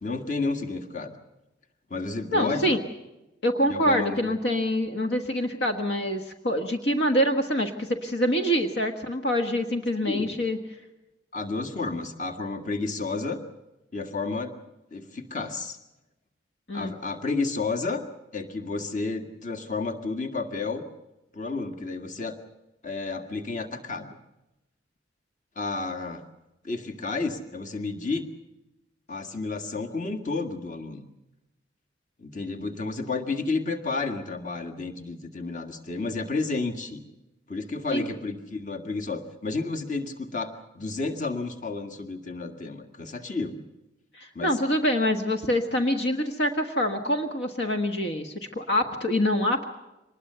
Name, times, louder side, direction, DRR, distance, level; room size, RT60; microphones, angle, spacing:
voice 1, 0.0-1.1 1.9-2.8 3.7-4.3 10.1-10.3 11.3-13.4 13.9-14.6 14.9-15.8 16.7-18.1 18.3-20.9 21.3-22.4 22.8-24.2 25.6-26.2 26.6-28.3 29.1-31.1 32.2-37.0 37.5-43.6 44.4-44.6, left 3 dB, 40° left, 4 dB, 1.9 m, -31 dB
voice 2, 2.3-2.8 3.4-10.6 16.7-16.9 37.9-38.0 44.1-49.6, equal, 65° left, 5 dB, 1.4 m, -25 dB
24.5 x 20.5 x 6.8 m, 0.99 s
head